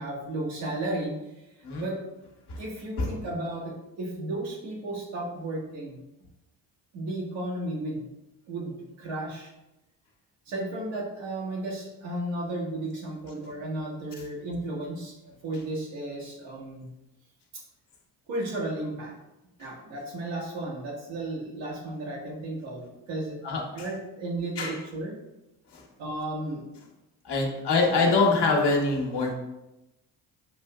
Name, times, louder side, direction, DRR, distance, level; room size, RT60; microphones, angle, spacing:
voice 1, 0.0-1.5 1.8-2.0 2.6-6.0 6.9-8.1 8.5-9.5 10.5-16.9 17.5-17.6 18.3-19.1 19.6-23.4 23.7-25.1 26.0-26.6, right 1 dB, 75° right, -3 dB, 1.3 m, -34 dB
voice 2, 27.2-29.3, left 3 dB, 55° left, 0 dB, 1.1 m, -24 dB
6.0 x 2.7 x 2.3 m, 0.94 s
hypercardioid pair, 50°, 48 cm